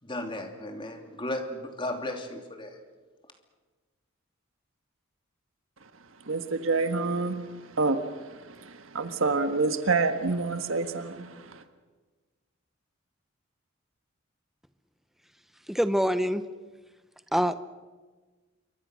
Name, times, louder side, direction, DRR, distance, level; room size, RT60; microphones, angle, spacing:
voice 1, 0.0-2.8, left 1 dB, 25° left, 4 dB, 2.9 m, -35 dB
voice 2, 6.3-7.4 7.8-8.0 8.9-11.3, right 3 dB, 80° right, 8 dB, 1.5 m, -26 dB
voice 3, 15.7-16.4 17.3-17.5, equal, ahead, 11 dB, 0.7 m, -24 dB
27.5 x 24.0 x 6.4 m, 1.3 s
head